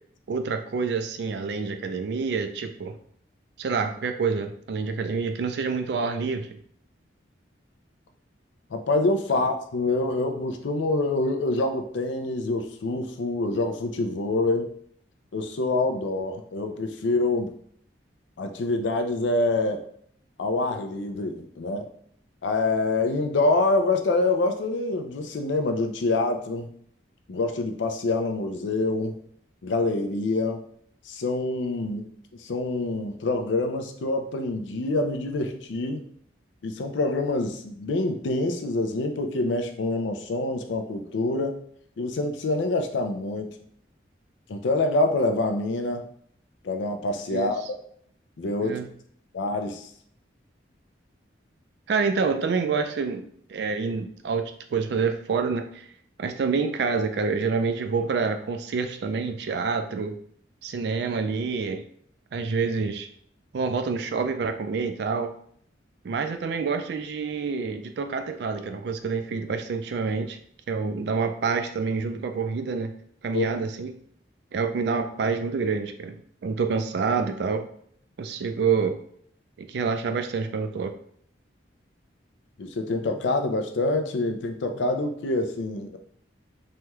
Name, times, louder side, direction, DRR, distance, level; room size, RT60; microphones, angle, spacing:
voice 1, 0.3-2.9 3.6-6.6 9.4-9.5 47.3-47.5 48.6-48.9 51.9-53.2 53.5-55.8 56.2-60.2 60.6-61.8 62.3-63.1 63.5-65.3 66.0-70.4 70.7-72.9 73.2-73.9 74.5-77.7 78.2-79.0 79.6-80.9, right 5 dB, 60° right, 7 dB, 0.3 m, -27 dB
voice 2, 8.7-14.7 15.3-17.5 18.4-19.9 20.4-21.9 22.4-26.7 27.3-29.2 29.6-30.7 31.1-32.1 32.4-36.0 36.6-41.6 42.0-43.5 44.5-46.1 46.6-47.6 48.4-48.8 49.3-49.9 73.3-73.6 82.6-86.0, left 2 dB, 75° left, 6 dB, 0.4 m, -26 dB
3.3 x 2.2 x 2.9 m, 0.63 s
head